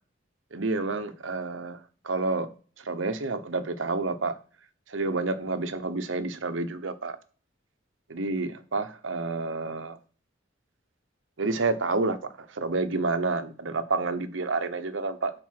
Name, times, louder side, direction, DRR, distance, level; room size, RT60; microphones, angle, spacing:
voice 1, 0.5-1.8 2.0-2.5 2.9-4.4 4.9-7.2 8.1-10.0 11.4-15.3, right 3 dB, 80° right, 0.9 m, -29 dB
7.5 x 5.2 x 5.8 m
head